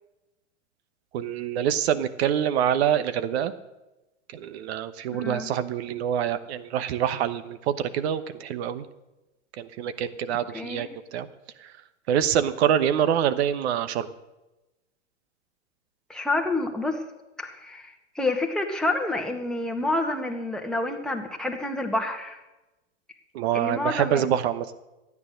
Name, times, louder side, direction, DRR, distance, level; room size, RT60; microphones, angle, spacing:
voice 1, 1.1-3.5 4.3-8.8 9.6-11.3 11.6-11.7 12.1-14.1 23.3-24.7, right 9 dB, 60° right, 13 dB, 1.1 m, -25 dB
voice 2, 5.1-5.5 10.5-10.9 16.1-17.0 17.4-22.4 23.5-24.2, left 2 dB, ahead, 1 dB, 1.7 m, -28 dB
13.5 x 9.6 x 6.5 m, 1.0 s
hypercardioid pair, 105°, 36 cm